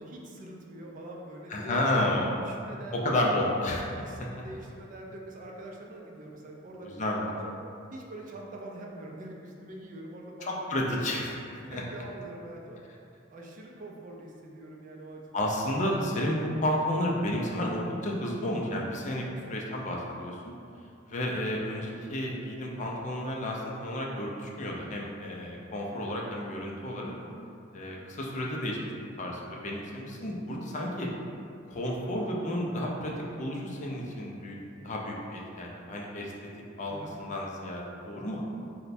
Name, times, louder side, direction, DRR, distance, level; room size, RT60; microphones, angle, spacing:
voice 1, 0.0-1.8 2.4-3.4 3.9-6.9 7.2-7.5 7.9-11.0 11.6-12.8 13.3-15.5 19.4-19.8 25.8-26.1 30.7-30.9 36.9-37.2, right 1 dB, 40° right, -1 dB, 0.4 m, -44 dB
voice 2, 1.5-2.4 2.9-3.8 4.2-4.3 6.8-7.3 10.5-11.8 15.3-20.5 21.1-27.2 27.7-28.8 29.2-31.1 31.7-33.1 33.4-34.6 34.8-36.3 36.8-38.4, left 1 dB, 35° left, -2 dB, 0.4 m, -31 dB
3.2 x 2.1 x 4.0 m, 2.5 s
head